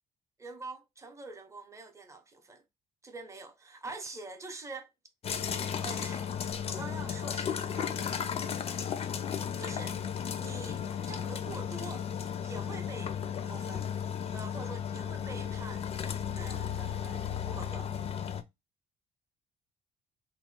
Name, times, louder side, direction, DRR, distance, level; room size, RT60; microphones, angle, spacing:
voice 1, 0.4-2.6 3.0-4.9 5.8-6.3 6.7-8.1 9.4-10.0 10.4-12.1 12.4-13.2 13.4-13.9 14.3-17.9, right 3 dB, 15° right, 0.6 m, -45 dB
sound 1, 5.2-18.4, left 8 dB, 35° left, 0.4 m, -34 dB
3.0 x 2.1 x 3.1 m
cardioid pair, 110°, 17 cm